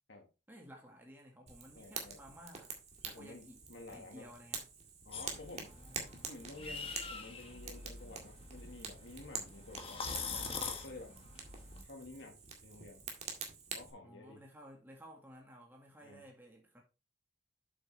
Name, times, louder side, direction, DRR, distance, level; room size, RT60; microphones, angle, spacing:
voice 1, 0.5-2.7 3.1-3.6 3.9-4.7 5.7-6.3 14.0-16.8, equal, 10° right, 1.8 m, -55 dB
Fire, 1.5-13.9, right 5 dB, 35° right, 2.0 m, -47 dB
voice 2, 1.7-2.2 3.0-4.3 5.0-5.7 6.3-10.0 10.6-11.1 11.8-13.0 13.7-14.4 16.0-16.2, left 2 dB, 65° left, 1.6 m, -51 dB
sound 1, 5.1-11.8, left 4 dB, 30° left, 1.4 m, -44 dB
8.0 x 6.9 x 3.2 m
head